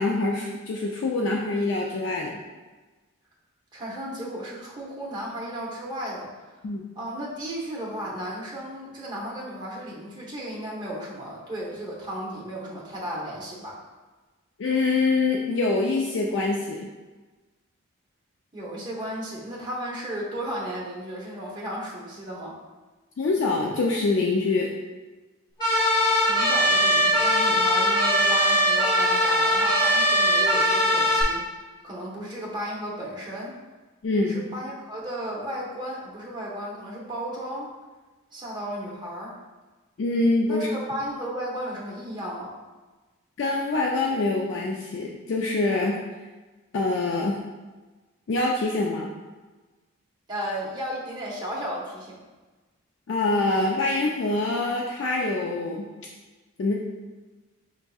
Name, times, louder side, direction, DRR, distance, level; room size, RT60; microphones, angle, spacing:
voice 1, 0.0-2.4 6.6-6.8 14.6-16.9 23.2-24.7 34.0-34.5 40.0-40.7 43.4-46.0 46.7-47.4 48.3-49.1 53.1-55.9 56.6-56.8, left 3 dB, 60° left, -1 dB, 0.3 m, -25 dB
voice 2, 3.7-6.3 7.0-13.8 18.5-22.6 26.2-31.4 31.8-33.6 34.3-37.7 38.3-39.3 40.5-42.5 50.3-52.2, equal, 20° right, -5 dB, 0.8 m, -34 dB
sound 1, 25.6-31.2, equal, 20° left, 0.9 m, -21 dB
5.8 x 2.6 x 2.3 m, 1.3 s
head